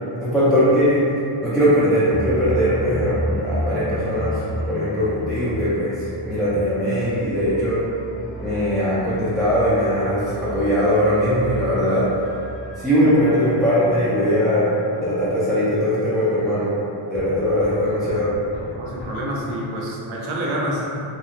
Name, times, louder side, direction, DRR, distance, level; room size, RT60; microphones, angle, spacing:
voice 1, 0.2-1.1 1.4-7.8 8.4-12.1 12.8-14.7 15.0-16.8 17.1-18.3, equal, ahead, -12 dB, 0.4 m, -20 dB
sound 1, 2.1-16.8 17.1-19.2, equal, 55° left, 1.3 m, -33 dB
voice 2, 18.8-20.8, right 1 dB, 75° right, -3 dB, 0.7 m, -27 dB
2.8 x 2.0 x 2.3 m, 2.7 s
cardioid pair, 95°, 50 cm